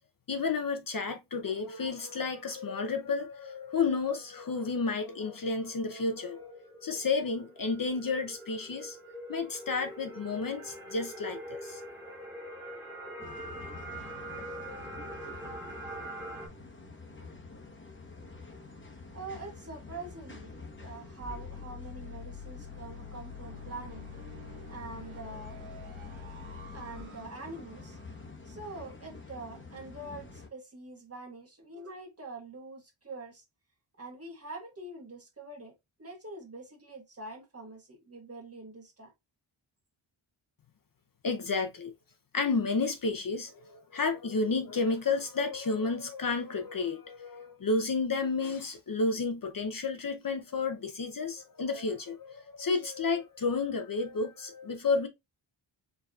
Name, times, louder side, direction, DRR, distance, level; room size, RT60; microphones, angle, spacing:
voice 1, 0.3-9.0 9.3-11.8 41.2-41.9 42.3-55.1, left 4 dB, 45° left, 0.7 m, -31 dB
sound 1, 5.1-16.5, right 1 dB, 5° right, 1.5 m, -44 dB
sound 2, 13.2-30.5, left 3 dB, 25° left, 1.0 m, -48 dB
voice 2, 19.1-20.5 20.8-24.0 24.7-25.6 26.7-28.0 28.4-33.4 34.0-35.7 36.0-39.1, right 2 dB, 30° right, 1.3 m, -44 dB
sound 3, 21.2-28.2, left 5 dB, 75° right, 1.1 m, -46 dB
4.6 x 4.0 x 2.3 m
wide cardioid pair, 180°, 48 cm